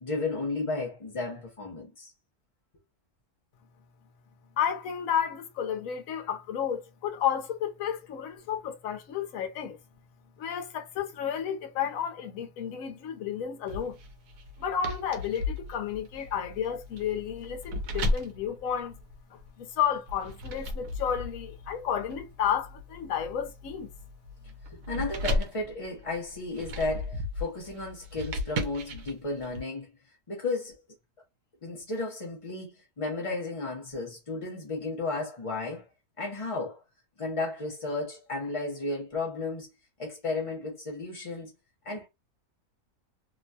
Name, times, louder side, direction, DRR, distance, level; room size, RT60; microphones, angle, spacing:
voice 1, 0.0-2.1 24.6-29.9 30.3-30.8 31.6-35.9 36.2-36.8 37.2-39.7 40.0-41.5 41.8-42.1, left 3 dB, 45° left, 0.4 m, -33 dB
voice 2, 4.6-9.8 10.4-14.0 14.6-19.0 19.3-23.9, left 8 dB, 65° left, 1.0 m, -32 dB
sound 1, 13.7-19.5 20.1-29.6, left 1 dB, 85° right, 1.2 m, -35 dB
3.0 x 2.2 x 2.6 m
omnidirectional pair, 1.6 m